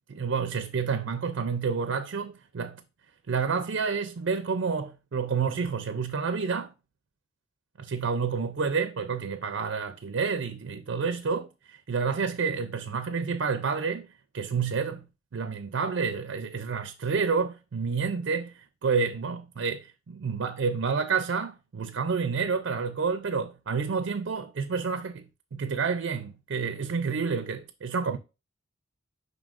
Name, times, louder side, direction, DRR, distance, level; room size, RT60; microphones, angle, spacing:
voice 1, 0.1-2.8 3.3-6.7 7.8-15.0 15.3-25.2 25.5-28.2, right 5 dB, 60° right, 0.4 m, -29 dB
7.4 x 5.3 x 2.5 m
head